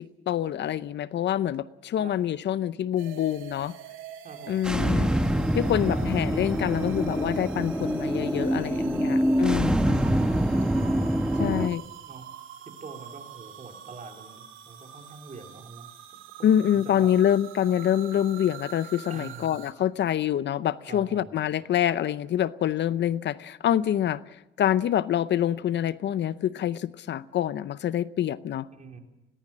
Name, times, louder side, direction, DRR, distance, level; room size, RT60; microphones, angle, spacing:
voice 1, 0.0-3.8 4.5-5.1 5.5-10.0 11.4-11.8 16.4-24.2 24.6-28.7, left 10 dB, 65° left, 16 dB, 0.7 m, -26 dB
sound 1, 3.0-19.7, right 10 dB, 85° right, 2.8 m, -45 dB
voice 2, 4.2-4.7 9.0-9.3 10.2-10.7 11.4-11.7 12.1-12.3 12.8-15.9 16.4-17.1 19.1-19.6 20.9-21.3 28.7-29.0, right 4 dB, 40° right, 3 dB, 4.2 m, -45 dB
sound 2, 4.6-11.7, right 1 dB, 5° right, 1.1 m, -25 dB
21.5 x 18.5 x 7.4 m, 0.93 s
cardioid pair, 90°, 20 cm